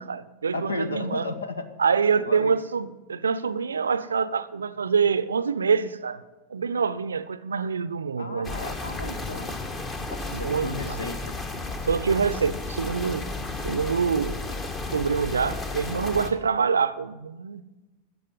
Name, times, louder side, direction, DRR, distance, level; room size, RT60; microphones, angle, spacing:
voice 1, 0.0-1.3 1.8-6.2 6.5-8.6 10.3-11.0 11.8-13.2 13.6-14.4 14.9-17.6, right 6 dB, 70° right, 0.5 m, -25 dB
voice 2, 0.5-1.7 2.2-2.5 8.2-9.5 10.1-11.3, left 2 dB, 75° left, 1.3 m, -34 dB
sound 1, 8.4-16.3, left 3 dB, 25° left, 1.6 m, -33 dB
14.0 x 7.9 x 9.3 m
figure-of-eight pair, 90°, 0 cm